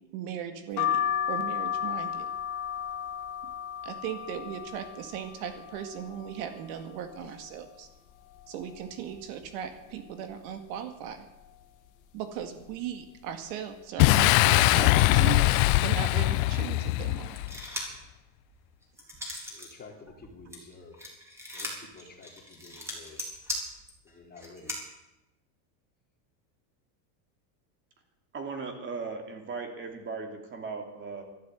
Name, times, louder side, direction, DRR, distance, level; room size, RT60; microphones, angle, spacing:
voice 1, 0.1-2.3 3.8-7.9 8.5-11.2 12.1-17.4, right 9 dB, 65° right, 8 dB, 2.0 m, -38 dB
sound 1, 0.8-6.4 6.9-7.7 8.1-8.2 8.3-9.5 9.9-10.3 11.1-11.4 12.2-12.4 12.7-12.9, left 9 dB, 40° left, 1.7 m, -34 dB
Boom, 14.0-17.6, left 18 dB, 60° left, 0.6 m, -22 dB
sound 2, 17.4-18.0 18.5-19.7 20.1-24.8, left 1 dB, 5° right, 3.9 m, -38 dB
voice 2, 19.5-21.0 21.5-23.2 24.0-24.8, left 3 dB, 20° left, 1 dB, 2.9 m, -50 dB
voice 3, 28.3-31.2, right 4 dB, 25° right, 4 dB, 2.8 m, -37 dB
14.0 x 12.5 x 8.2 m, 0.95 s
supercardioid pair, 145°, 46 cm